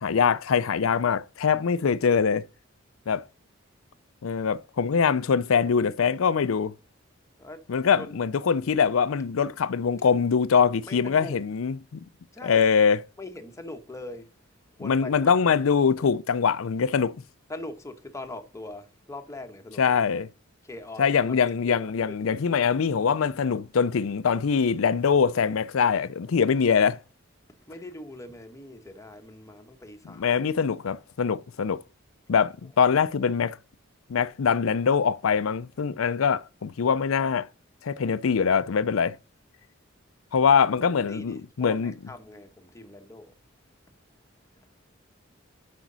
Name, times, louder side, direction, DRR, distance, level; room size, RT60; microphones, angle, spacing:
voice 1, 0.0-2.4 3.1-3.3 4.2-6.7 7.7-12.0 12.4-13.1 14.8-17.2 19.8-20.3 21.0-27.0 30.0-31.8 32.3-33.6 34.1-37.5 37.8-39.2 40.3-41.9, left 6 dB, 90° left, 0.5 m, -23 dB
voice 2, 10.9-11.4 12.3-12.7 13.2-14.3 14.8-15.4 17.5-20.0 20.6-21.4 21.6-22.2 27.7-30.3 32.3-32.5 40.8-43.3, left 2 dB, 15° left, 1.1 m, -42 dB
12.0 x 5.2 x 4.0 m
head